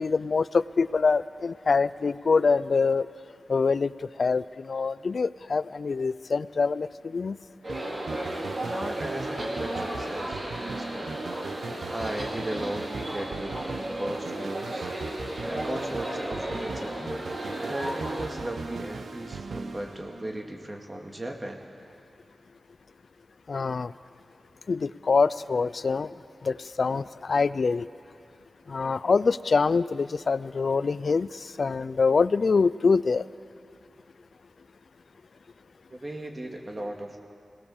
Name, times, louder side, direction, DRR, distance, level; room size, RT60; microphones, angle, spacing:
voice 1, 0.0-3.1 3.5-3.9 4.2-7.4 23.5-23.9 24.7-26.1 26.4-27.9 28.7-33.3, left 4 dB, 65° left, 17 dB, 0.4 m, -25 dB
sound 1, 7.6-18.3, right 1 dB, 55° right, 4.8 m, -34 dB
sound 2, 7.7-20.6, right 4 dB, 85° right, 1.0 m, -38 dB
voice 2, 8.6-11.2 11.9-14.9 15.4-17.1 17.7-21.6 35.9-37.2, right 1 dB, 35° right, 2 dB, 2.1 m, -36 dB
21.0 x 18.0 x 7.2 m, 2.5 s
cardioid pair, 50°, 0 cm